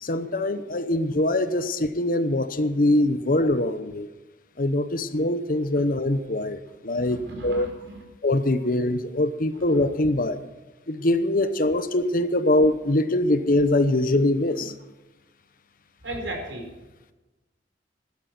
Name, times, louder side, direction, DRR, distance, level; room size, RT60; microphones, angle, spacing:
voice 1, 0.0-4.1 4.6-7.7 8.2-10.4 10.9-14.7, left 1 dB, 50° left, 12 dB, 0.9 m, -23 dB
voice 2, 6.7-8.0 8.6-8.7 9.6-9.9 16.0-16.7, right 1 dB, 85° right, 2 dB, 4.9 m, -37 dB
15.5 x 12.0 x 6.1 m, 1.1 s
head